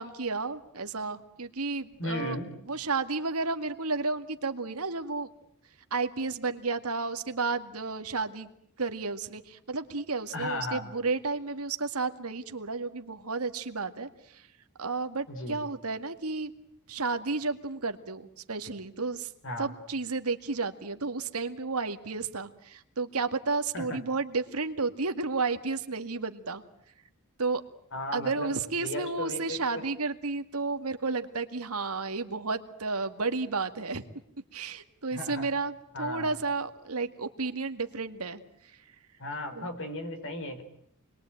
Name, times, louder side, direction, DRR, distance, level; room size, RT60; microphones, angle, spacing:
voice 1, 0.0-2.4 2.7-5.3 5.9-8.5 8.8-14.5 14.8-16.5 16.9-19.3 19.6-26.6 27.4-27.6 28.1-34.0 34.5-38.8 39.5-39.7, right 4 dB, 80° right, 8 dB, 2.0 m, -32 dB
voice 2, 2.0-2.5 10.3-10.8 15.3-15.6 19.4-19.7 23.7-24.0 27.9-28.6 28.8-29.8 35.1-35.5 35.9-36.3 39.2-40.6, left 1 dB, 60° left, 7 dB, 4.5 m, -35 dB
28.5 x 22.0 x 9.0 m, 0.69 s
head